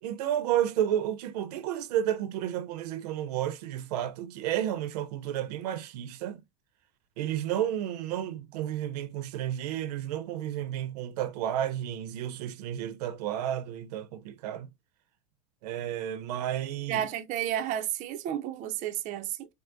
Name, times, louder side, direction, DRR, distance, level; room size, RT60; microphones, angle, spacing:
voice 1, 0.0-6.4 7.2-14.7 15.6-17.1, right 11 dB, 80° right, 0.7 m, -31 dB
voice 2, 16.9-19.5, right 11 dB, 40° right, 0.5 m, -32 dB
4.7 x 2.1 x 2.5 m
supercardioid pair, 130°, 20 cm